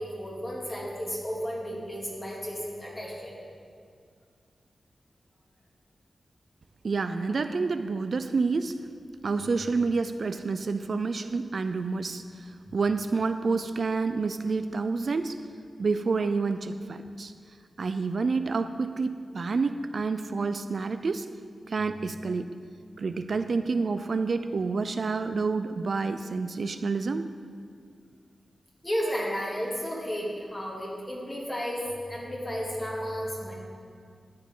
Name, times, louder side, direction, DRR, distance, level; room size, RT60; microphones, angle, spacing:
voice 1, 0.0-3.4 28.8-31.8 32.1-33.5, equal, 25° left, -4 dB, 2.7 m, -33 dB
voice 2, 6.8-8.7 9.2-15.4 15.8-17.3 17.8-21.3 21.7-22.5 23.0-27.3, right 4 dB, 60° right, 9 dB, 0.4 m, -28 dB
13.0 x 9.7 x 3.8 m, 2.2 s
wide cardioid pair, 100°, 0 cm